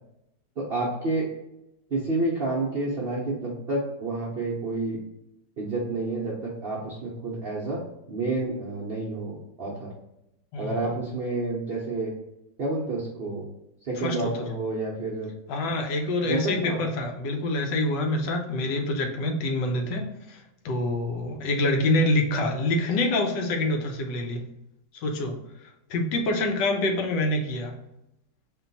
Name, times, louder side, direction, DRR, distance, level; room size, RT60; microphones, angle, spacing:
voice 1, 0.6-1.3 1.9-5.0 5.6-9.9 10.6-12.1 12.6-13.5 13.8-15.3 15.6-15.8 16.2-16.8, right 2 dB, 55° right, -4 dB, 0.6 m, -29 dB
voice 2, 15.5-20.0 20.6-24.4 25.0-25.3 25.9-27.8, left 2 dB, 85° left, 3 dB, 1.4 m, -26 dB
4.2 x 2.3 x 4.0 m, 0.87 s
omnidirectional pair, 1.9 m